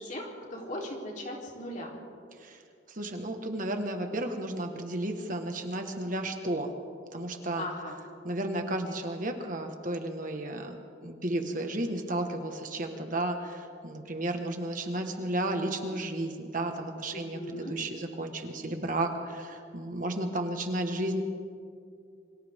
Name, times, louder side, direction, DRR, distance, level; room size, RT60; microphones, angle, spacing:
voice 1, 0.0-1.9 7.6-8.0 17.1-17.7, left 1 dB, 40° left, -1 dB, 3.7 m, -38 dB
voice 2, 2.9-6.7 7.1-7.7 8.2-21.2, right 1 dB, 45° right, 4 dB, 1.6 m, -33 dB
28.5 x 24.5 x 3.7 m, 2.3 s
head